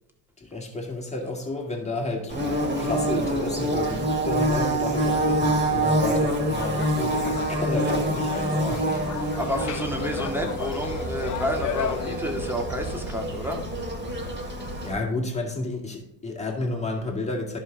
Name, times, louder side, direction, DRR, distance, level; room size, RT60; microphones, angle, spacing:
voice 1, 0.4-2.5 2.8-9.0 14.8-17.6, left 2 dB, 15° left, 0 dB, 2.1 m, -31 dB
Bird / Buzz, 2.3-14.9, right 1 dB, 25° right, 2.3 m, -26 dB
sound 1, 6.6-12.2, left 9 dB, 40° left, 0.7 m, -35 dB
voice 2, 8.5-8.8 9.4-13.6, equal, 5° right, 2 dB, 1.8 m, -30 dB
11.0 x 5.6 x 3.9 m, 0.83 s
supercardioid pair, 90°, 46 cm